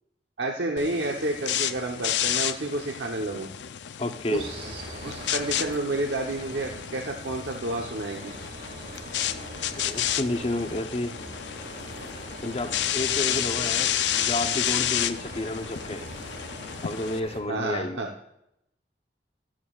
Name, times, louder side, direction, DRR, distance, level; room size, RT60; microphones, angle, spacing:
voice 1, 0.4-3.5 4.3-8.3 17.5-18.1, right 2 dB, 75° right, 1 dB, 1.1 m, -30 dB
sound 1, 0.8-17.2, left 11 dB, 80° left, 0.5 m, -31 dB
voice 2, 4.0-4.5 9.8-11.2 12.4-16.0 16.8-18.0, left 1 dB, 35° left, 7 dB, 1.0 m, -31 dB
sound 2, 4.3-17.4, right 1 dB, 60° right, 2.5 m, -42 dB
13.5 x 12.0 x 2.5 m, 0.80 s
head